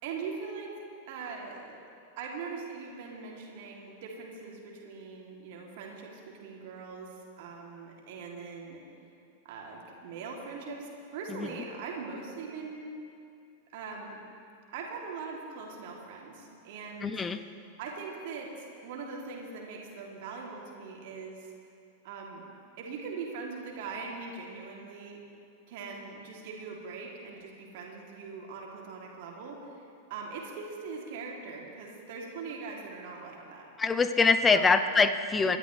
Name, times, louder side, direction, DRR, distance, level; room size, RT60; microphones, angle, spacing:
voice 1, 0.0-1.8 2.2-8.8 9.4-12.9 13.7-14.2 14.7-17.2 17.8-21.5 22.0-22.4 22.8-25.2 25.7-29.8 30.1-33.9 34.5-34.9 35.4-35.6, right 4 dB, 50° right, -1 dB, 2.8 m, -41 dB
voice 2, 17.0-17.4 33.8-35.6, left 4 dB, 15° left, 11 dB, 0.7 m, -24 dB
26.5 x 12.5 x 3.3 m, 2.5 s
figure-of-eight pair, 90°, 0 cm